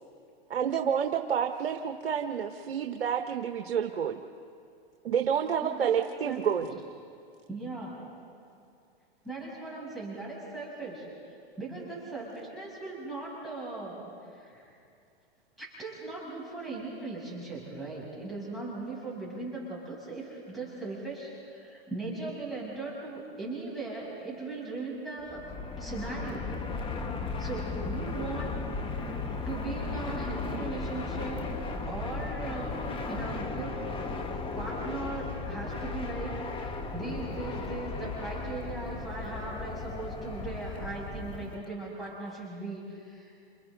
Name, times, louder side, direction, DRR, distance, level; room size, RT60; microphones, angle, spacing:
voice 1, 0.5-4.2 5.0-6.8, right 8 dB, 90° right, 5 dB, 1.1 m, -29 dB
voice 2, 5.6-6.0 6.2-6.5 7.5-8.2 9.2-14.7 15.6-25.4 25.8-26.6 27.4-29.2 29.5-31.5 31.9-32.8 33.1-33.8 34.5-43.3, right 3 dB, ahead, -6 dB, 6.9 m, -39 dB
Fixed-wing aircraft airplane, 25.2-41.6, left 4 dB, 15° left, 1.4 m, -36 dB
29.0 x 28.0 x 3.9 m, 2.4 s
hypercardioid pair, 130°, 30 cm